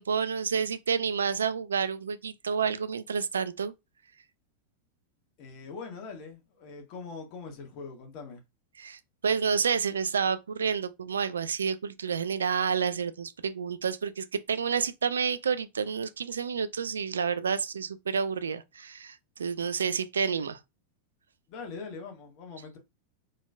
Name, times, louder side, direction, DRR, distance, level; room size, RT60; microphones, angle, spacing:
voice 1, 0.0-3.7 8.8-20.6, right 6 dB, 70° right, 0.4 m, -29 dB
voice 2, 5.4-8.4 21.5-22.8, left 4 dB, 40° left, 1.4 m, -42 dB
3.9 x 3.7 x 2.2 m
figure-of-eight pair, 90°, 0 cm